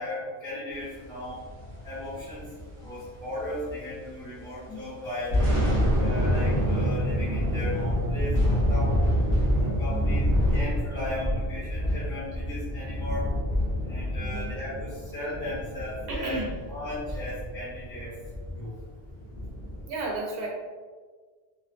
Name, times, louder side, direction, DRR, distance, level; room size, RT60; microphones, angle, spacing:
voice 1, 0.0-1.4 1.8-2.4 2.8-5.4 6.0-9.2 9.5-10.2 10.5-13.3 13.8-14.7 15.1-16.4 16.7-18.1 18.6-18.8, left 1 dB, 10° left, -13 dB, 0.9 m, -36 dB
sound 1, 1.3-4.1 4.4-4.5 5.0-19.8, equal, 20° right, 0.6 m, -27 dB
voice 2, 9.9-10.3 12.3-12.4 14.2-14.6 16.1-16.6 19.9-20.5, right 2 dB, 65° right, -2 dB, 0.8 m, -34 dB
2.5 x 2.3 x 2.4 m, 1.5 s
omnidirectional pair, 1.1 m